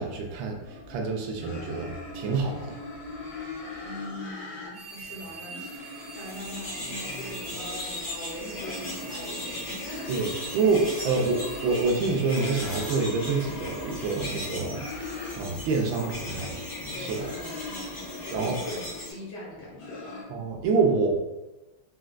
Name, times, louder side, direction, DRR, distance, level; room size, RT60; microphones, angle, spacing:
voice 1, 0.0-2.7 10.1-10.3 10.5-14.8 15.4-16.5 16.8-17.3 18.3-18.6 20.3-21.2, right 4 dB, 85° right, 1 dB, 1.4 m, -27 dB
sound 1, 0.6-1.0 1.4-4.7 5.0-7.6 8.3-11.8 12.1-15.4 15.7-19.0 19.5-20.2, left 3 dB, 90° left, 1.7 m, -41 dB
voice 2, 3.8-10.9 16.0-16.5 16.9-20.2, left 1 dB, 75° left, -5 dB, 1.8 m, -42 dB
sound 2, 4.7-12.9, right 5 dB, 65° right, 0.8 m, -45 dB
sound 3, 5.9-19.1, left 1 dB, 50° left, 0.4 m, -38 dB
4.4 x 2.2 x 2.4 m, 1.0 s
omnidirectional pair, 2.1 m